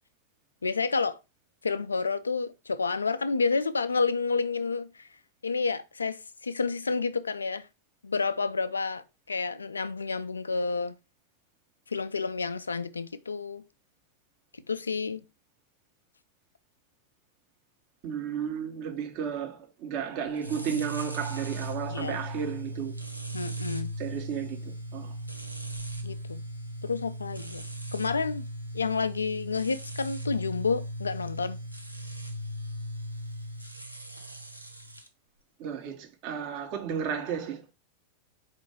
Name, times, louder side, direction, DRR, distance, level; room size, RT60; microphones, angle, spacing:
voice 1, 0.6-1.2 1.6-5.1 5.4-7.7 8.0-10.9 11.9-13.6 14.7-15.2 21.9-22.2 23.3-23.9 26.0-26.4 26.8-27.6 27.9-28.5 28.7-31.6, left 4 dB, 75° left, 0.3 m, -30 dB
voice 2, 18.0-22.9 24.0-25.1 35.6-37.6, right 7 dB, 45° right, 1.0 m, -33 dB
sound 1, 20.4-35.1, right 1 dB, 90° right, 0.5 m, -38 dB
4.5 x 2.5 x 4.5 m
figure-of-eight pair, 90°, 0 cm